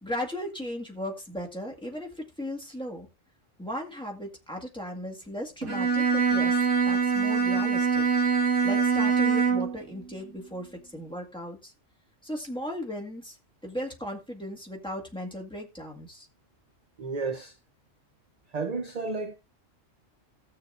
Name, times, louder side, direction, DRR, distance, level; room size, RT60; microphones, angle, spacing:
voice 1, 0.0-3.1 3.6-6.6 6.9-8.0 8.6-11.7 12.2-13.4 13.6-16.3, equal, 5° left, 1.8 m, -36 dB
Bowed string instrument, 5.6-9.8, right 5 dB, 70° right, 1.8 m, -24 dB
voice 2, 17.0-17.6 18.5-19.4, right 4 dB, 40° right, 0.6 m, -32 dB
17.5 x 6.6 x 2.5 m
omnidirectional pair, 1.3 m